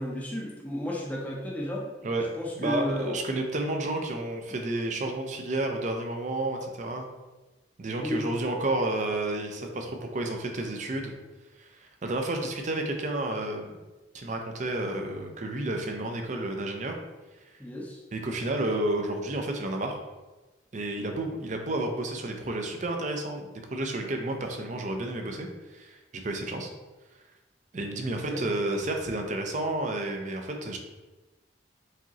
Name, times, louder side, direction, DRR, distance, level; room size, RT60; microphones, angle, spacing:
voice 1, 0.0-1.8 2.4-3.2 4.5-4.6 8.0-8.3 17.6-18.0 28.3-28.4, left 1 dB, 10° left, -2 dB, 0.6 m, -33 dB
voice 2, 2.6-7.1 7.8-11.1 11.6-13.8 14.1-17.0 18.1-20.0 20.7-25.5 25.7-26.0 26.2-26.7 27.7-30.8, right 2 dB, 40° right, 3 dB, 0.5 m, -31 dB
4.8 x 2.9 x 2.8 m, 1.1 s
head